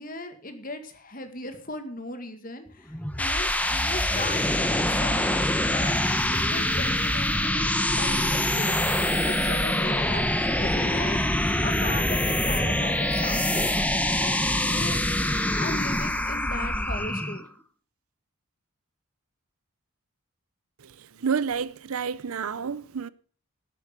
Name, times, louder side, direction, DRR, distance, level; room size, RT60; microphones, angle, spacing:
voice 1, 0.0-6.0 6.3-8.8 9.2-10.2 10.5-11.2 11.6-15.0 15.6-17.4, left 2 dB, 40° left, 1.9 m, -37 dB
sound 1, 2.9-17.4, left 1 dB, 5° left, 0.8 m, -25 dB
voice 2, 21.2-23.1, right 6 dB, 75° right, 0.6 m, -29 dB
12.0 x 8.5 x 6.6 m
head